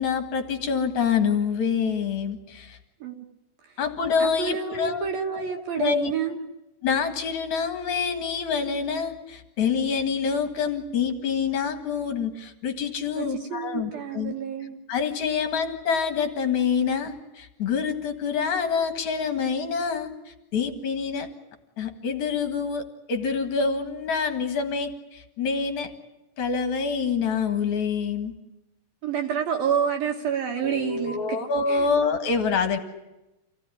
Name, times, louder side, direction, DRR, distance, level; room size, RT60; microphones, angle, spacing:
voice 1, 0.0-2.8 3.8-5.1 5.3-6.1 6.8-14.3 14.9-21.3 21.8-22.8 23.1-25.9 26.4-28.3 30.6-32.8, left 6 dB, 55° left, 7 dB, 2.3 m, -26 dB
voice 2, 4.2-6.5 13.2-14.8 29.0-31.4 31.7-31.9, right 7 dB, 65° right, 3 dB, 2.6 m, -29 dB
27.5 x 17.5 x 10.0 m, 0.98 s
omnidirectional pair, 5.7 m